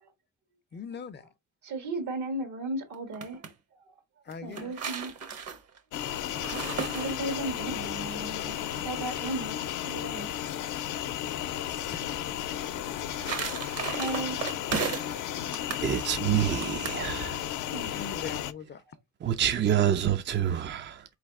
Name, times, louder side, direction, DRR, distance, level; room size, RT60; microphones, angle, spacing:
voice 1, 0.7-1.3 4.2-4.8 11.9-12.0 17.9-18.8, left 6 dB, 35° left, 0.5 m, -40 dB
voice 2, 1.6-3.5 3.9-4.0 4.4-5.2 6.9-9.6 9.8-10.3 12.6-13.0 13.9-14.4 17.6-17.9, right 2 dB, 75° right, 1.6 m, -36 dB
sound 1, 2.9-3.5 4.3-7.6 12.8-15.2 15.5-15.9 16.6-17.0, right 6 dB, 55° right, 1.1 m, -35 dB
sound 2, 5.9-18.5, left 11 dB, 80° left, 0.6 m, -34 dB
voice 3, 15.8-17.4 19.2-21.0, right 10 dB, 40° right, 0.5 m, -27 dB
4.0 x 3.2 x 3.5 m
cardioid pair, 90°, 30 cm